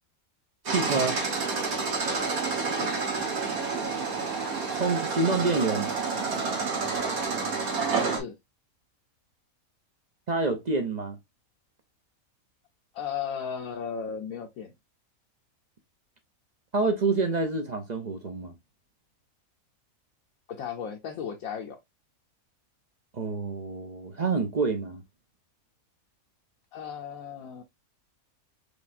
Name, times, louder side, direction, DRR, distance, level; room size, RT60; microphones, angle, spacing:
voice 1, 0.6-1.2 4.7-5.9 10.3-11.2 16.7-18.5 23.1-25.0, right 3 dB, 45° right, 0.5 m, -27 dB
sound 1, 0.7-8.2, right 4 dB, 80° right, 1.9 m, -29 dB
voice 2, 2.6-2.9 8.0-8.4 12.9-14.7 20.5-21.8 26.7-27.6, left 7 dB, 75° left, 1.1 m, -35 dB
4.9 x 3.1 x 2.5 m
omnidirectional pair, 1.5 m